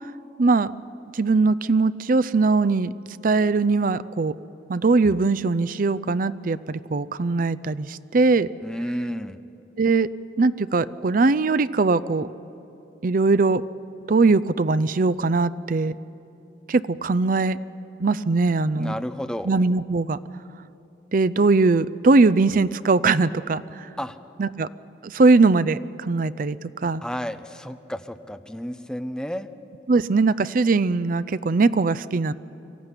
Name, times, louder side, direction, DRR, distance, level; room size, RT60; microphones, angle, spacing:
voice 1, 0.4-0.7 1.1-2.9 3.2-4.3 4.7-8.5 9.8-10.1 10.4-12.3 13.0-13.6 14.1-16.0 16.7-17.6 18.0-19.0 19.4-20.2 21.1-23.6 24.4-24.7 25.0-27.0 29.9-32.3, right 3 dB, 50° right, 16 dB, 0.5 m, -20 dB
voice 2, 8.6-9.4 18.8-19.5 24.0-24.2 27.0-29.5, equal, 5° left, 10 dB, 0.7 m, -31 dB
23.5 x 15.0 x 9.8 m, 2.9 s
head